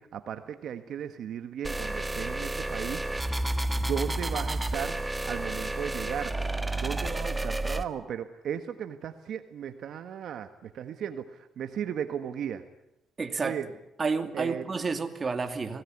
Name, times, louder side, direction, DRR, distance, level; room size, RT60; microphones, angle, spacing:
voice 1, 0.0-3.0 3.7-6.3 6.7-12.6 13.4-13.7 14.3-14.6, right 9 dB, 70° right, 9 dB, 1.5 m, -36 dB
sound 1, 1.6-7.8, right 1 dB, 10° right, 1.5 m, -31 dB
voice 2, 13.2-13.6 14.0-15.8, right 4 dB, 35° right, 7 dB, 2.6 m, -30 dB
25.5 x 18.5 x 9.7 m, 0.87 s
cardioid pair, 90°, 0 cm